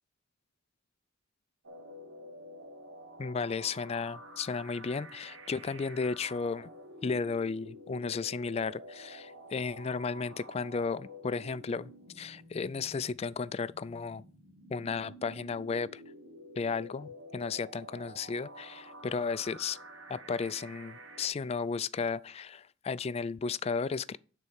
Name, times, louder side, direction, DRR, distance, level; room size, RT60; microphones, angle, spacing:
sound 1, 1.6-21.3, equal, 80° right, 1.4 m, -50 dB
voice 1, 3.2-6.7 7.0-14.2 14.7-16.0 16.6-19.8 20.1-24.2, left 5 dB, 30° left, 0.3 m, -34 dB
9.7 x 4.2 x 7.3 m
head